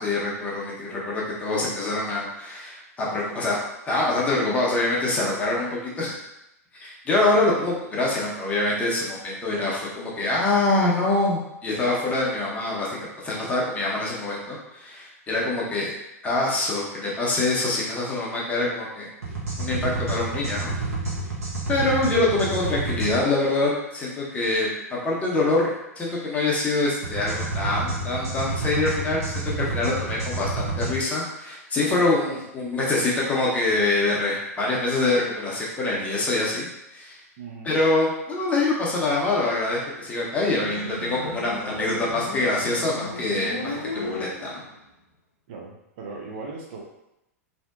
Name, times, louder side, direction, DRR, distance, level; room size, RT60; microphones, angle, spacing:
voice 1, 0.0-3.6 3.9-6.2 6.8-12.9 13.2-15.9 16.2-19.1 19.6-20.7 21.7-37.2 37.6-44.6, left 2 dB, 15° left, -5 dB, 0.6 m, -25 dB
sound 1, 19.2-23.1 27.0-30.9, right 3 dB, 65° right, 0.8 m, -29 dB
voice 2, 37.4-37.7 45.5-46.8, right 4 dB, 45° right, -1 dB, 0.5 m, -38 dB
Motorcycle, 40.5-44.8, left 3 dB, 75° left, 0.5 m, -35 dB
2.6 x 2.1 x 2.4 m, 0.90 s
figure-of-eight pair, 100°, 8 cm